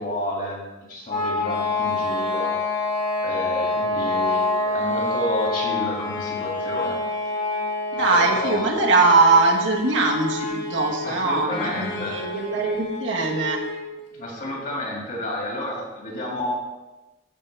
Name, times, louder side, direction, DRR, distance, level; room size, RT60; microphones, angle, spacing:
voice 1, 0.0-2.6 3.2-7.0 8.1-8.6 11.0-12.2 14.1-16.5, left 1 dB, 50° left, -2 dB, 2.2 m, -30 dB
sound 1, 1.1-13.9, left 3 dB, 65° left, 2.0 m, -27 dB
voice 2, 7.9-13.6, right 3 dB, 80° right, 0 dB, 1.3 m, -21 dB
12.5 x 4.5 x 3.3 m, 1.1 s
head